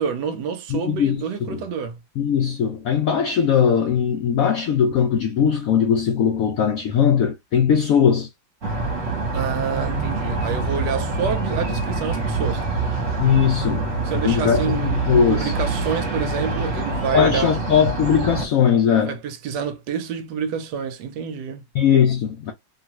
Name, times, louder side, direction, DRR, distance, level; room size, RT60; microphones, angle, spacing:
voice 1, 0.0-2.0 9.3-12.6 14.0-17.5 18.9-21.6, right 7 dB, 75° right, 1.2 m, -28 dB
voice 2, 0.7-1.2 1.5-1.6 2.2-8.3 13.2-13.9 14.2-15.5 17.1-19.2 21.7-22.5, left 7 dB, 80° left, 0.7 m, -19 dB
sound 1, 8.6-18.5, right 3 dB, 45° right, 1.2 m, -25 dB
2.9 x 2.4 x 2.9 m
omnidirectional pair, 2.0 m